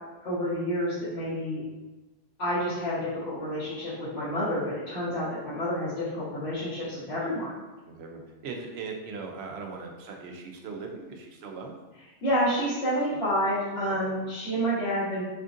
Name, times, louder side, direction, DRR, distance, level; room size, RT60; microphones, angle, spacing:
voice 1, 0.2-1.6 2.4-7.5 12.2-15.2, equal, 80° left, -14 dB, 1.6 m, -29 dB
voice 2, 7.9-11.8 13.1-13.2 14.0-14.1, right 4 dB, 85° right, 2 dB, 0.8 m, -39 dB
4.3 x 2.4 x 2.5 m, 1.1 s
omnidirectional pair, 1.0 m